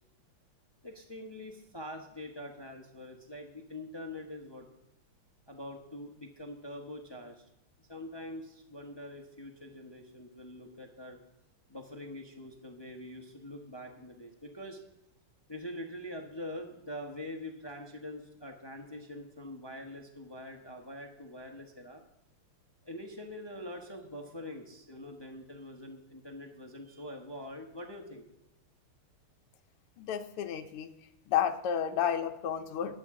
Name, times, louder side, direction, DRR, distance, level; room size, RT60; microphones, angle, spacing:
voice 1, 0.8-4.7 5.5-7.4 7.9-11.2 11.7-14.8 15.5-22.0 22.8-28.3, left 1 dB, 25° left, 2 dB, 0.5 m, -44 dB
voice 2, 30.0-30.9 31.3-33.0, left 9 dB, 85° left, 7 dB, 1.7 m, -31 dB
20.5 x 7.8 x 3.7 m, 0.85 s
omnidirectional pair, 2.4 m